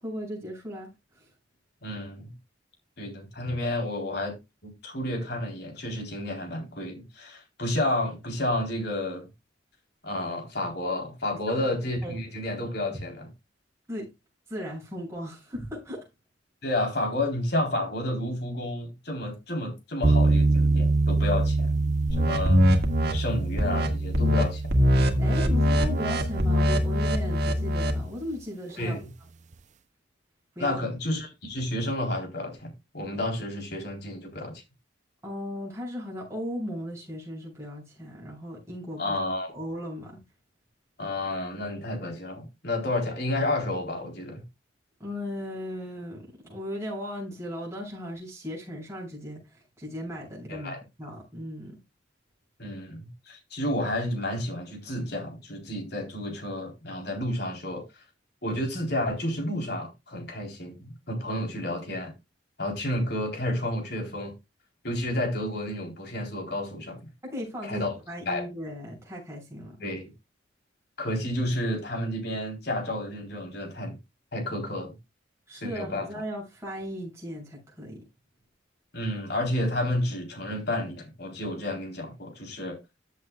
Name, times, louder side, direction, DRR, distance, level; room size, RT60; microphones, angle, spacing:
voice 1, 0.0-1.3 11.5-11.6 12.0-12.2 13.9-14.1 14.5-16.1 25.2-29.0 30.6-30.8 35.2-39.2 39.5-40.2 45.0-51.8 67.2-69.9 75.5-78.0, equal, 15° right, 7.3 m, -37 dB
voice 2, 1.8-2.3 3.0-4.4 4.6-9.3 10.0-13.3 16.6-21.7 22.2-22.6 23.1-24.7 28.8-29.0 30.6-34.6 39.0-39.6 41.0-44.4 50.5-50.8 52.6-58.0 58.4-62.1 62.6-64.3 64.8-67.0 67.6-67.9 68.3-68.4 69.8-70.1 71.0-74.0 74.3-75.0 75.5-76.1 78.9-82.8, left 1 dB, 55° left, 3.8 m, -31 dB
sound 1, 20.0-28.2, right 2 dB, 40° right, 0.5 m, -26 dB
sound 2, 22.1-23.1 23.6-23.9 24.1-24.4 24.7-28.0, equal, 55° right, 1.9 m, -23 dB
14.5 x 8.0 x 2.4 m
head